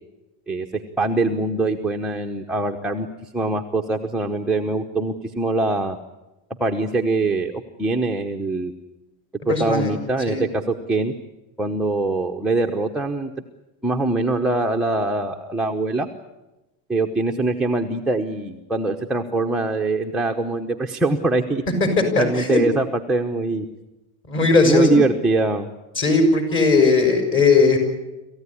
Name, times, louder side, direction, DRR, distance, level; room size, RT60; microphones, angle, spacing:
voice 1, 0.5-6.0 6.6-8.7 9.5-11.1 11.6-13.3 13.8-16.1 16.9-21.6 22.2-23.7 24.6-25.7, right 2 dB, ahead, 1 dB, 0.9 m, -23 dB
voice 2, 9.5-9.9 10.3-10.4 22.1-22.6 24.3-25.0 26.0-27.8, left 4 dB, 25° left, 5 dB, 6.3 m, -18 dB
27.5 x 15.0 x 10.0 m, 1.0 s
supercardioid pair, 155°, 44 cm